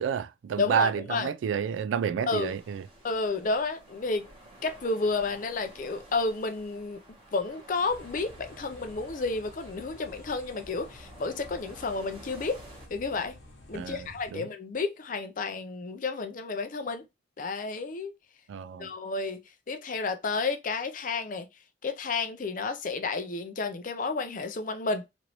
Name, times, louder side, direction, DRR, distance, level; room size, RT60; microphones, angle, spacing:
voice 1, 0.0-2.8 13.7-14.5 18.5-18.9, right 7 dB, 75° right, 0.3 m, -30 dB
voice 2, 0.6-1.3 2.3-2.6 3.0-4.3 4.6-7.0 7.3-12.6 12.9-13.4 13.7-17.0 17.4-18.1 18.8-19.4 19.7-21.5 21.8-25.0, left 3 dB, 45° left, 0.5 m, -31 dB
sound 1, 2.4-12.9, right 1 dB, 30° right, 1.1 m, -51 dB
sound 2, 7.9-14.3, left 1 dB, 80° left, 1.0 m, -51 dB
3.1 x 2.6 x 3.0 m
head